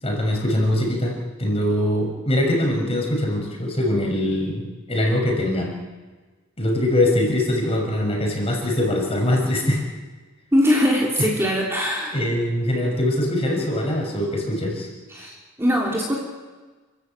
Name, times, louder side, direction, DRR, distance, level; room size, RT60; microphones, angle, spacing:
voice 1, 0.0-5.7 6.6-9.8 11.2-11.3 12.1-14.9, left 1 dB, 30° left, 0 dB, 6.4 m, -22 dB
voice 2, 10.5-12.2 15.1-16.2, equal, 10° right, -2 dB, 3.4 m, -21 dB
29.5 x 15.0 x 9.1 m, 1.3 s
head